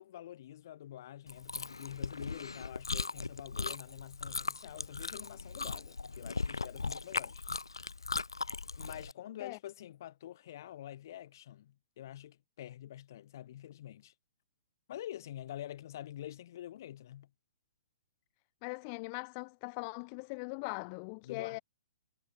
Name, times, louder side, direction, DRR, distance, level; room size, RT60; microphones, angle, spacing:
voice 1, 0.0-7.4 8.8-14.1 14.9-17.3 21.2-21.6, left 12 dB, 50° left, 1.9 m, -47 dB
Chewing mastication, 1.3-9.1, left 4 dB, 80° left, 1.6 m, -38 dB
voice 2, 18.6-21.6, left 34 dB, 35° left, 0.5 m, -40 dB
figure-of-eight pair, 125°, 2 cm